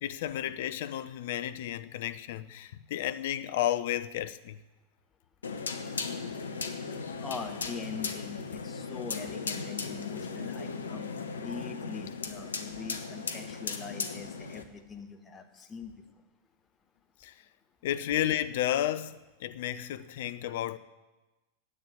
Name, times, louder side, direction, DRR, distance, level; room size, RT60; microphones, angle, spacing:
voice 1, 0.0-4.6 17.2-17.3 17.8-20.8, left 12 dB, 55° left, 0.6 m, -32 dB
sound 1, 5.4-14.6, left 5 dB, 70° left, 1.0 m, -37 dB
voice 2, 7.1-16.0, left 5 dB, 15° left, 1.4 m, -43 dB
9.8 x 8.5 x 9.4 m
figure-of-eight pair, 90°, 0 cm